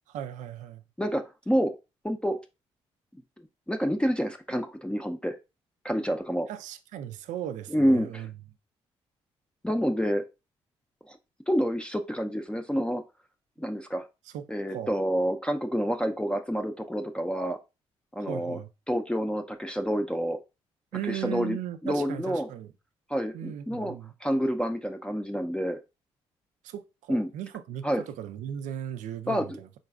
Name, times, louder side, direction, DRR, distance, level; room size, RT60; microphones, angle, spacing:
voice 1, 0.1-0.8 6.5-8.3 14.3-14.9 18.2-18.7 20.9-22.7 23.3-24.1 26.6-29.7, right 10 dB, 65° right, 0.4 m, -37 dB
voice 2, 1.0-1.7 2.0-2.4 3.7-5.4 5.8-6.5 7.7-8.2 9.6-10.2 11.1-11.2 11.5-13.0 13.6-14.0 14.5-17.6 18.2-18.6 18.9-20.4 21.1-21.6 21.8-22.5 23.1-23.9 24.2-25.8 27.1-27.3 27.8-28.0 29.3-29.6, equal, 5° left, 0.5 m, -28 dB
3.9 x 3.8 x 2.3 m
hypercardioid pair, 45°, 14 cm